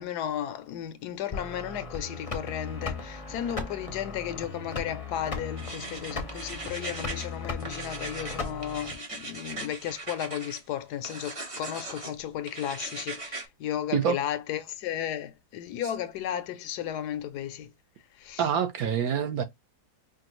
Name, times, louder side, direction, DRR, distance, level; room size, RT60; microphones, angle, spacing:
voice 1, 0.0-17.7 18.1-18.5, left 10 dB, 80° left, 1.1 m, -34 dB
sound 1, 1.3-8.9, left 3 dB, 35° left, 0.5 m, -37 dB
sound 2, 5.6-7.3 7.6-10.6 11.0-12.1 12.5-13.5, right 2 dB, 35° right, 0.6 m, -39 dB
voice 2, 18.4-19.4, right 8 dB, 65° right, 1.2 m, -26 dB
5.1 x 2.4 x 3.0 m
omnidirectional pair, 1.7 m